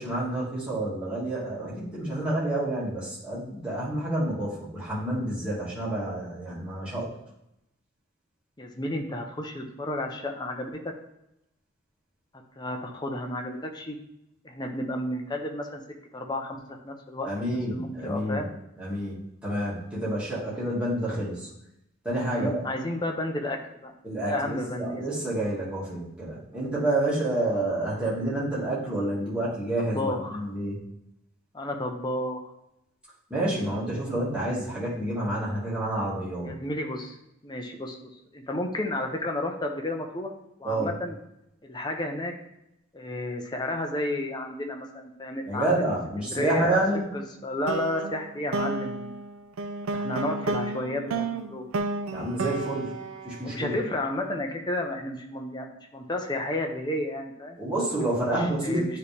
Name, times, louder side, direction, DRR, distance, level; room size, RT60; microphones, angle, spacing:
voice 1, 0.0-7.1 17.3-18.5 18.8-19.1 19.4-21.5 22.0-22.6 24.0-30.8 33.3-36.5 40.6-40.9 45.5-47.1 52.1-52.9 53.2-53.7 57.6-58.8, right 1 dB, 5° right, -9 dB, 1.9 m, -29 dB
voice 2, 8.6-10.9 12.6-14.0 14.4-15.8 16.1-18.5 22.2-23.9 24.2-25.3 29.9-30.5 31.5-32.5 36.4-37.2 37.4-40.3 40.6-41.2 41.6-42.3 42.9-45.7 46.2-46.8 47.1-49.2 49.9-51.7 53.4-57.6 58.2-59.0, left 1 dB, 20° left, 2 dB, 0.7 m, -32 dB
sound 1, 47.7-54.1, right 3 dB, 75° right, 0.4 m, -32 dB
9.3 x 3.3 x 3.4 m, 0.84 s
head